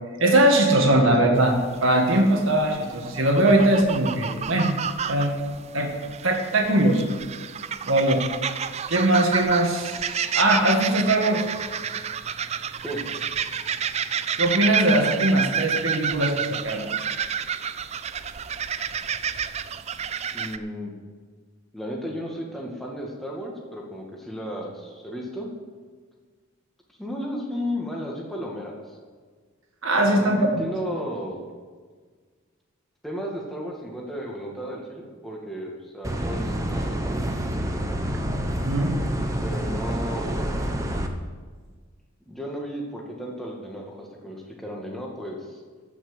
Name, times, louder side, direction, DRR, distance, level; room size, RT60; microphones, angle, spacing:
voice 1, 0.2-1.5 1.8-4.7 5.1-5.3 5.7-5.9 6.2-7.0 7.8-8.2 8.9-11.4 14.4-16.9 29.8-30.5 38.6-38.9, right 1 dB, 70° right, 1 dB, 1.9 m, -20 dB
sound 1, 1.3-20.6, right 7 dB, 30° right, 0.4 m, -30 dB
voice 2, 20.3-20.9 21.7-25.5 27.0-28.8 30.1-31.5 33.0-37.3 39.4-40.6 42.3-45.6, equal, ahead, -2 dB, 2.0 m, -34 dB
sound 2, 36.0-41.1, right 1 dB, 15° right, 0.9 m, -28 dB
14.5 x 6.0 x 8.1 m, 1.5 s
head